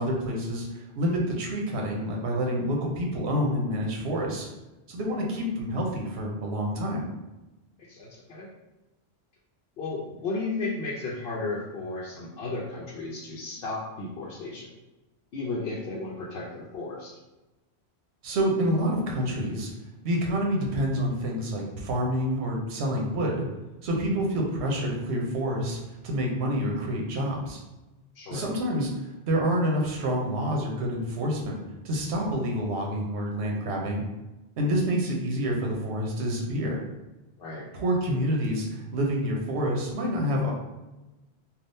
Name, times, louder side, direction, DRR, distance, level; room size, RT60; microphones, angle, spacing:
voice 1, 0.0-4.5 4.9-7.1 18.2-19.7 20.0-23.4 23.8-25.8 26.0-27.6 28.3-31.5 31.8-34.0 34.6-36.8 37.7-40.5, equal, 85° right, -1 dB, 1.0 m, -28 dB
voice 2, 7.8-8.5 9.8-14.7 15.3-17.2 28.1-28.5 37.4-37.6, left 3 dB, 65° left, -4 dB, 0.8 m, -34 dB
3.5 x 2.4 x 2.6 m, 1.0 s
omnidirectional pair, 1.1 m